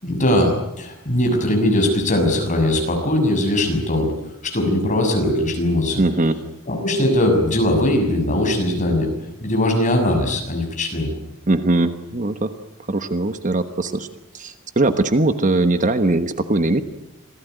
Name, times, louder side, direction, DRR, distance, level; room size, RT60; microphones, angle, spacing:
voice 1, 0.0-4.1 4.4-6.0 6.7-9.1 9.4-11.1, left 1 dB, 35° left, 3 dB, 6.8 m, -20 dB
voice 2, 6.0-6.4 11.5-12.5 12.9-14.1 14.3-16.8, right 2 dB, 35° right, 9 dB, 1.2 m, -20 dB
27.0 x 18.0 x 9.3 m, 0.92 s
head